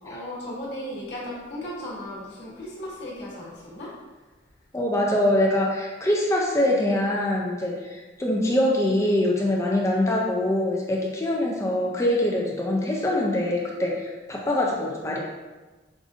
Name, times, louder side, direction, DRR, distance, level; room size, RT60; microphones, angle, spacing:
voice 1, 0.0-3.9, left 1 dB, 70° left, -7 dB, 1.0 m, -36 dB
voice 2, 4.7-15.2, left 1 dB, 15° left, -2 dB, 0.4 m, -24 dB
4.8 x 2.6 x 2.5 m, 1.2 s
head